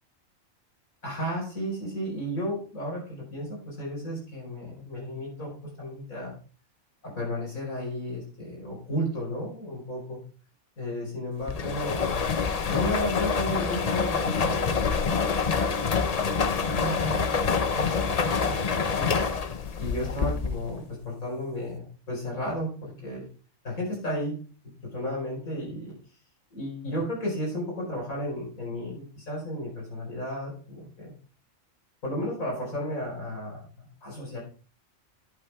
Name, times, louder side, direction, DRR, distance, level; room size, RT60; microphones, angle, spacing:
voice 1, 1.0-6.4 7.0-10.2 10.8-12.3 12.7-17.3 17.7-23.3 23.6-24.4 24.9-26.0 26.5-31.1 32.0-34.4, equal, 80° left, -3 dB, 5.3 m, -34 dB
sound 1, 11.5-20.8, left 5 dB, 40° left, 0.6 m, -26 dB
11.0 x 8.4 x 3.5 m, 0.37 s
omnidirectional pair, 1.4 m